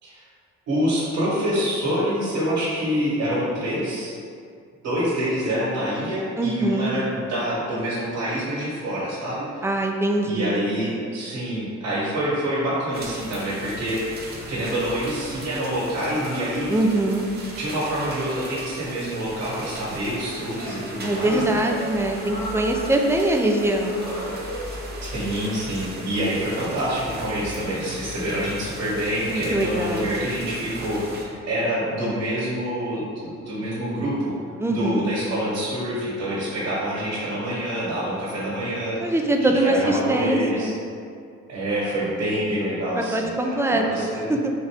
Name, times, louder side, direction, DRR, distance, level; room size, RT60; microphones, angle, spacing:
voice 1, 0.7-4.2 4.8-9.8 10.2-14.0 14.5-16.7 17.6-21.6 21.8-22.0 25.1-34.3 34.7-40.7 41.5-44.3, equal, 60° right, -8 dB, 1.4 m, -26 dB
voice 2, 6.4-6.9 9.6-10.6 16.7-17.2 21.0-24.0 29.3-30.1 34.6-35.1 39.0-40.7 42.9-44.5, right 1 dB, 10° right, 2 dB, 0.3 m, -23 dB
sound 1, 12.9-31.2, right 1 dB, 35° right, 0.8 m, -38 dB
sound 2, 14.8-15.2 16.2-17.1 18.2-19.1 19.9-20.8 21.2-23.0 23.8-25.3 26.4-26.6, equal, 70° left, 1.2 m, -37 dB
4.0 x 2.6 x 3.4 m, 2.3 s
cardioid pair, 90°, 30 cm